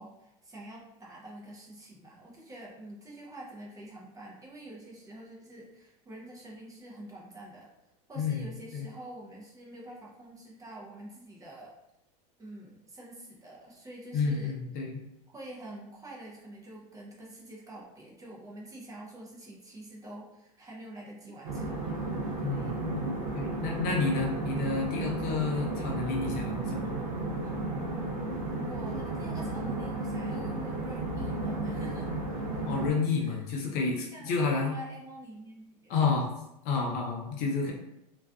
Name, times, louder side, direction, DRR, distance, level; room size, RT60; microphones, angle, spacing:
voice 1, 0.0-7.7 8.1-11.7 12.4-14.6 15.3-22.1 22.4-22.8 28.5-32.1 33.2-33.5 33.8-34.3 34.6-35.9 36.8-36.9, right 1 dB, 15° right, -4 dB, 0.6 m, -47 dB
voice 2, 14.1-15.0 22.4-23.1 23.3-26.9 32.7-34.7 35.9-36.3 36.6-37.7, left 4 dB, 45° left, 0 dB, 0.6 m, -30 dB
sound 1, 21.4-32.9, right 2 dB, 65° right, 0.7 m, -33 dB
2.5 x 2.3 x 2.3 m, 0.87 s
hypercardioid pair, 115°, 21 cm